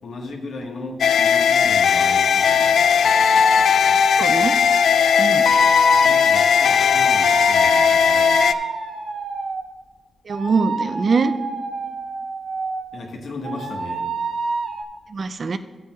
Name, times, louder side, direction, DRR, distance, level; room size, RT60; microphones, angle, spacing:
voice 1, 0.0-2.8 6.0-8.4 12.9-14.1, left 2 dB, 60° left, 2 dB, 1.3 m, -35 dB
sound 1, 1.0-8.5, left 7 dB, 80° left, 0.3 m, -17 dB
sound 2, 2.0-9.7 10.3-13.0 13.4-14.8, right 4 dB, 60° right, 0.8 m, -29 dB
voice 2, 4.2-4.6 5.2-5.4 10.3-11.3 15.1-15.6, right 4 dB, 40° right, 10 dB, 0.3 m, -22 dB
14.0 x 8.1 x 2.3 m, 1.3 s
wide cardioid pair, 180°, 0 cm